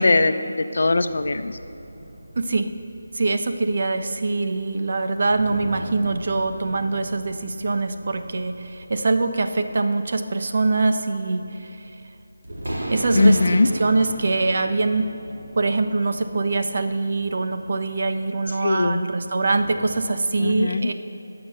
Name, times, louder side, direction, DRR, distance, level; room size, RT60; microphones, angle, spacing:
voice 1, 0.0-1.5 13.1-13.7 18.6-19.1 20.4-20.9, left 2 dB, 65° left, 10 dB, 0.7 m, -20 dB
sound 1, 1.1-20.1, right 1 dB, 85° right, 3.6 m, -38 dB
voice 2, 2.3-2.7 3.1-11.8 12.9-15.1 15.6-20.9, right 3 dB, 50° right, 7 dB, 1.0 m, -23 dB
21.0 x 7.1 x 6.6 m, 2.8 s
figure-of-eight pair, 170°, 0 cm